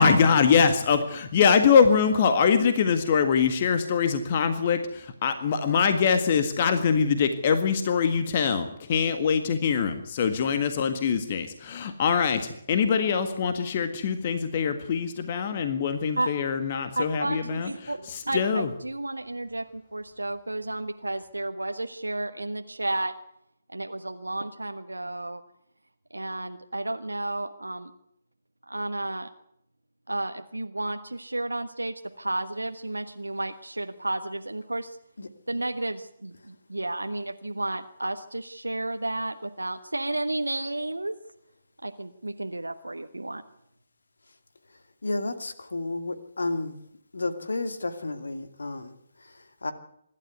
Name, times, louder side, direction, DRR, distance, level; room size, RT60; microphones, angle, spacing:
voice 1, 0.0-18.7, left 6 dB, 35° left, 8 dB, 1.7 m, -23 dB
voice 2, 17.0-23.1 23.7-25.4 26.1-27.9 28.7-29.3 30.1-35.0 35.5-41.2 41.8-43.4, right 2 dB, 75° right, 7 dB, 1.2 m, -32 dB
voice 3, 45.0-46.8 47.1-49.7, left 2 dB, 65° left, 8 dB, 2.4 m, -32 dB
25.5 x 12.5 x 9.4 m, 0.76 s
figure-of-eight pair, 140°, 0 cm